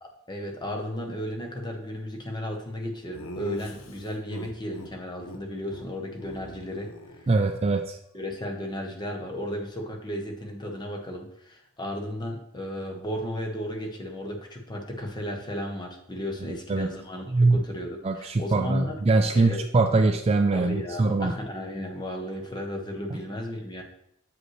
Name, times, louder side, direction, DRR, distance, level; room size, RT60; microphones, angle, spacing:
voice 1, 0.0-7.3 8.1-19.0 19.3-19.7 20.5-23.8, equal, 20° left, 1 dB, 0.9 m, -34 dB
Laughter, 3.1-4.9 5.2-5.4 5.7-5.9 6.1-7.7, left 1 dB, 70° left, 0.7 m, -42 dB
voice 2, 7.3-8.0 16.5-16.9 17.3-17.6 18.0-21.3, right 3 dB, 25° right, 5 dB, 0.3 m, -23 dB
7.6 x 5.1 x 3.2 m, 0.76 s
head